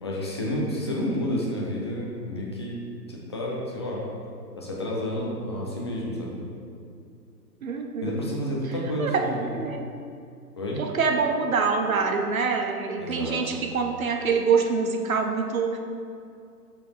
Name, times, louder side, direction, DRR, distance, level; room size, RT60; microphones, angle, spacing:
voice 1, 0.0-2.7 3.1-4.0 4.6-6.4 8.0-9.6 10.6-10.8 13.0-13.6, left 1 dB, 20° left, -4 dB, 0.5 m, -30 dB
voice 2, 7.6-8.1 9.0-9.3 9.5-9.8 10.8-15.8, right 5 dB, 55° right, 4 dB, 0.7 m, -25 dB
6.5 x 4.3 x 4.8 m, 2.4 s
figure-of-eight pair, 130°, 50 cm